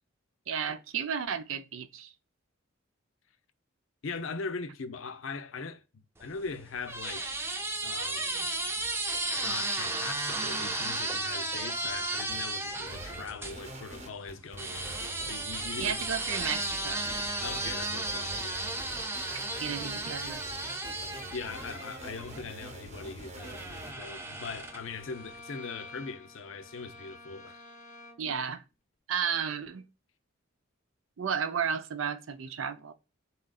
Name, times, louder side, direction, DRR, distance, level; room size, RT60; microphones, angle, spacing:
voice 1, 0.5-2.1 15.8-17.1 19.6-20.8 28.2-28.6 29.1-29.8 31.2-32.9, right 7 dB, 75° right, 0.5 m, -33 dB
voice 2, 4.0-5.8 6.2-7.3 7.8-8.5 9.4-15.0 15.3-16.0 17.4-18.7 21.3-27.6, left 4 dB, 75° left, 0.6 m, -41 dB
sound 1, 6.2-13.6 14.6-22.5 23.4-25.0, right 2 dB, 10° right, 0.4 m, -34 dB
sound 2, 12.3-12.4 12.9-23.9, right 1 dB, 35° right, 0.8 m, -45 dB
Bowed string instrument, 23.4-28.4, left 2 dB, 35° left, 0.6 m, -50 dB
4.3 x 3.8 x 2.3 m
head